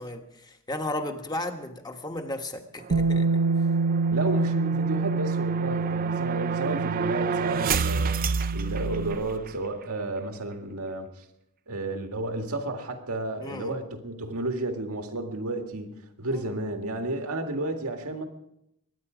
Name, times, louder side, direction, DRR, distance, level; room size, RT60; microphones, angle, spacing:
voice 1, 0.0-3.4 13.4-13.8 16.3-16.4, left 1 dB, 20° left, 5 dB, 1.3 m, -34 dB
sound 1, 2.8-9.6, right 5 dB, 40° right, 0.5 m, -31 dB
Bass guitar, 2.9-9.2, right 4 dB, 70° right, 0.8 m, -27 dB
voice 2, 4.1-11.2 11.7-18.3, right 2 dB, 90° right, 5 dB, 1.8 m, -32 dB
22.5 x 10.0 x 5.0 m, 0.80 s
head